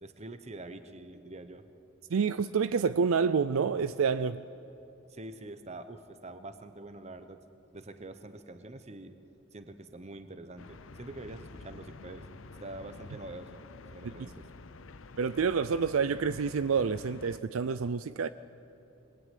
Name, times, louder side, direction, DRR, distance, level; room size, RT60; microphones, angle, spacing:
voice 1, 0.0-1.7 5.1-7.4 7.7-12.3 12.6-13.6 13.9-14.5, right 2 dB, 30° right, 0.9 m, -45 dB
voice 2, 2.1-4.4 15.2-18.3, right 5 dB, 75° right, 0.5 m, -28 dB
sound 1, 10.6-17.4, left 3 dB, 70° left, 0.7 m, -49 dB
24.0 x 20.5 x 9.3 m
head